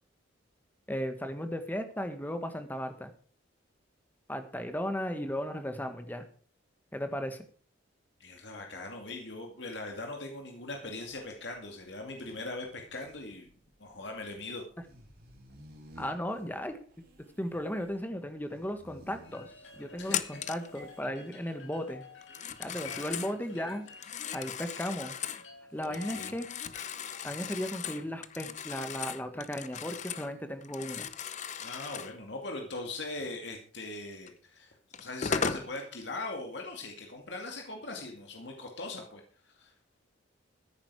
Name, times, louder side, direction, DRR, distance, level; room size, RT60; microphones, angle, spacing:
voice 1, 0.9-3.1 4.3-6.3 6.9-7.4 16.0-16.8 17.2-19.5 19.8-22.0 22.6-23.9 24.3-25.2 25.7-26.5 27.2-31.1, equal, 10° left, 8 dB, 1.6 m, -36 dB
voice 2, 8.2-13.5 13.8-14.6 20.0-20.2 22.6-23.3 25.8-26.4 31.6-39.7, left 2 dB, 60° left, 2 dB, 2.3 m, -41 dB
sound 1, 10.9-21.0, right 1 dB, 50° right, 3.5 m, -56 dB
sound 2, 19.2-27.6, left 4 dB, 80° left, 6.3 m, -51 dB
Telephone, 20.1-20.7 22.2-23.4 23.9-25.5 25.8-30.3 30.6-32.2 34.3-34.4 34.9-35.7, left 7 dB, 40° left, 0.7 m, -37 dB
14.0 x 10.5 x 4.8 m, 0.42 s
head